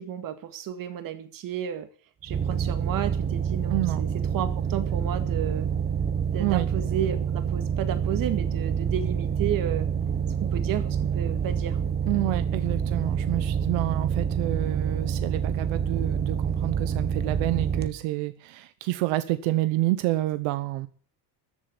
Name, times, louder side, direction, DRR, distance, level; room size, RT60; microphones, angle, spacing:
voice 1, 0.0-1.9 2.2-5.7 6.3-9.9 10.4-11.8, right 10 dB, 45° right, 10 dB, 2.0 m, -32 dB
sound 1, 2.3-17.9, right 7 dB, 20° right, 1.1 m, -27 dB
voice 2, 3.7-4.0 6.4-6.7 12.1-20.9, right 16 dB, 85° right, 12 dB, 1.2 m, -28 dB
14.0 x 7.8 x 9.7 m, 0.43 s
cardioid pair, 160°, 46 cm